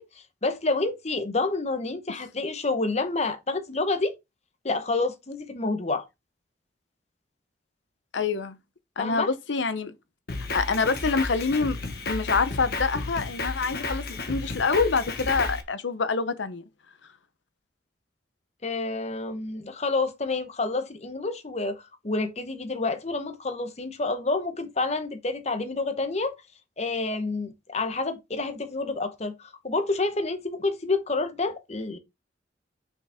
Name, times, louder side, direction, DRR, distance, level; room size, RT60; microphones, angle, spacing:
voice 1, 0.0-4.1 4.6-6.1 9.0-9.3 18.6-26.3 26.8-32.0, left 3 dB, 35° left, 1.0 m, -28 dB
voice 2, 8.1-8.6 9.0-9.9 10.5-11.8 12.1-16.6, left 4 dB, 90° left, 0.8 m, -26 dB
Drum kit, 10.3-15.6, left 3 dB, 60° left, 1.3 m, -32 dB
6.2 x 5.5 x 3.5 m
head